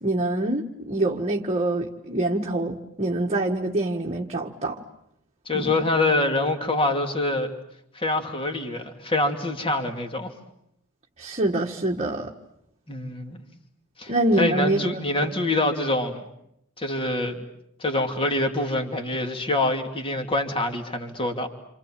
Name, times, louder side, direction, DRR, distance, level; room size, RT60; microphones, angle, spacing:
voice 1, 0.0-4.8 5.5-5.7 11.2-12.3 14.1-15.0, right 1 dB, 30° right, 0 dB, 1.5 m, -25 dB
voice 2, 5.5-7.5 7.9-10.3 12.9-13.4 14.0-16.2 16.8-17.4 17.8-21.5, left 2 dB, 25° left, 4 dB, 2.7 m, -25 dB
28.0 x 28.0 x 7.4 m, 0.77 s
head